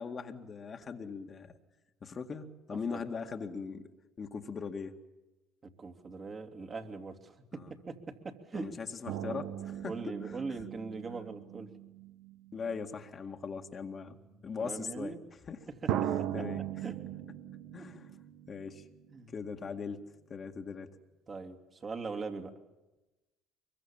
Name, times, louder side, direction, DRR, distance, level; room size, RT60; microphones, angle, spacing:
voice 1, 0.0-1.5 2.0-3.9 4.2-5.0 7.5-7.7 8.5-10.2 12.5-14.2 14.4-15.2 15.5-15.7 16.3-16.6 17.7-18.1 18.5-18.8 19.3-21.0, left 5 dB, 40° left, 5 dB, 2.0 m, -40 dB
voice 2, 2.7-3.0 5.6-8.8 9.8-11.7 14.6-15.2 15.7-17.0 17.8-17.9 19.1-19.3 21.3-22.5, right 4 dB, 35° right, 5 dB, 2.8 m, -41 dB
sound 1, 9.1-13.0 13.9-14.0 15.9-19.2 19.5-19.6, right 11 dB, 65° right, 1.2 m, -38 dB
24.5 x 23.0 x 7.4 m, 1.1 s
hypercardioid pair, 65°, 0 cm